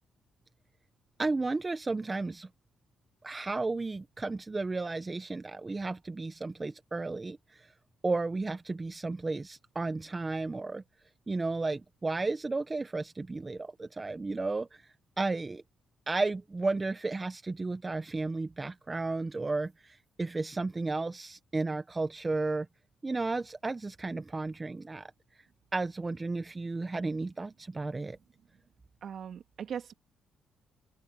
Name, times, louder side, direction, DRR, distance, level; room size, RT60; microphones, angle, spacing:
voice 1, 1.2-2.5 3.2-7.7 8.0-10.8 11.3-14.8 15.2-15.6 16.1-22.7 23.0-25.1 25.7-28.2, right 3 dB, 25° right, 1.0 m, -33 dB
voice 2, 29.0-29.9, right 8 dB, 60° right, 3.1 m, -39 dB
open air
cardioid pair, 90°, 0 cm